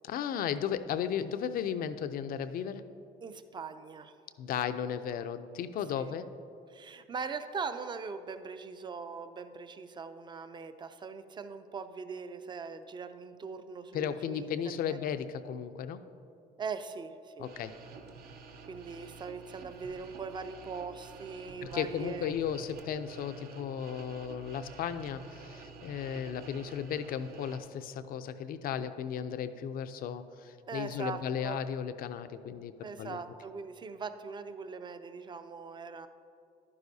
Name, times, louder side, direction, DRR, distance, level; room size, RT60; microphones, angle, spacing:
voice 1, 0.0-2.9 4.4-6.3 13.9-16.1 17.4-17.8 21.6-33.2, left 8 dB, 60° left, 11 dB, 0.5 m, -35 dB
voice 2, 3.2-4.1 6.0-6.1 6.7-14.5 14.9-15.0 16.6-17.5 18.7-22.3 30.7-31.6 32.8-36.1, right 5 dB, 25° right, 10 dB, 0.5 m, -41 dB
sound 1, 17.4-27.6, right 4 dB, 65° right, 0.8 m, -50 dB
11.0 x 9.7 x 2.7 m, 2.6 s
cardioid pair, 110°, 17 cm